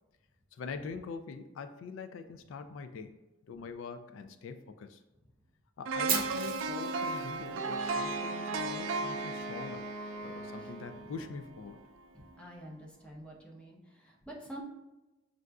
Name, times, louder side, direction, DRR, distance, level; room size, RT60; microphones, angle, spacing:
voice 1, 0.5-3.1 3.5-5.0 5.8-9.8 10.2-11.8, left 5 dB, 80° left, 8 dB, 0.3 m, -43 dB
sound 1, 5.9-11.9 12.3-12.4, right 3 dB, 90° right, 0.4 m, -36 dB
Fire, 6.1-8.1, right 5 dB, 50° right, 0.7 m, -36 dB
Wind instrument woodwind instrument, 7.6-11.4, right 1 dB, 55° left, 0.8 m, -43 dB
voice 2, 12.1-14.6, right 1 dB, 5° left, -2 dB, 0.7 m, -48 dB
6.3 x 2.5 x 2.3 m, 1.0 s
head